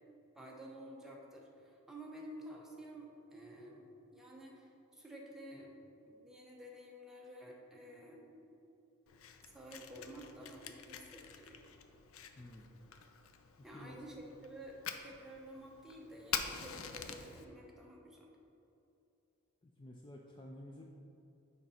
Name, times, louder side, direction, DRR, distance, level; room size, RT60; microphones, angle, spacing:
voice 1, 0.3-5.7 6.1-8.4 9.5-11.6 13.6-14.1 14.4-18.3, right 1 dB, ahead, -3 dB, 0.9 m, -51 dB
Fire, 9.1-17.4, left 7 dB, 75° left, 0.5 m, -46 dB
voice 2, 12.4-12.7 13.6-14.0 19.6-20.9, left 1 dB, 20° left, -1 dB, 0.4 m, -52 dB
6.5 x 5.3 x 4.2 m, 2.8 s
head